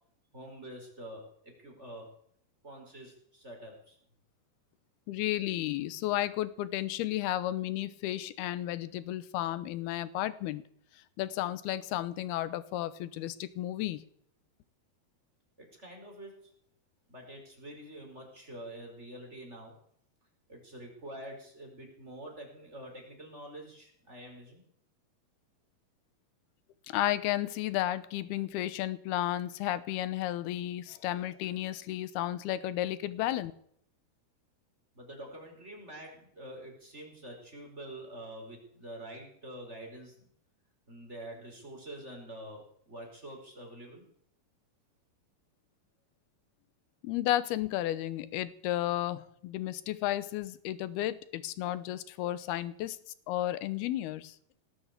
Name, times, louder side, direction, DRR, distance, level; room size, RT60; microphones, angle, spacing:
voice 1, 0.3-2.1 2.6-4.0 15.6-16.5 17.1-19.7 20.5-24.6 34.9-40.3 40.9-44.0, right 1 dB, 15° right, 1 dB, 5.0 m, -46 dB
voice 2, 5.1-10.6 10.9-14.1 26.9-33.5 47.0-53.0 53.3-54.4, left 14 dB, 80° left, 15 dB, 2.9 m, -33 dB
19.0 x 9.1 x 8.2 m, 0.65 s
omnidirectional pair, 4.5 m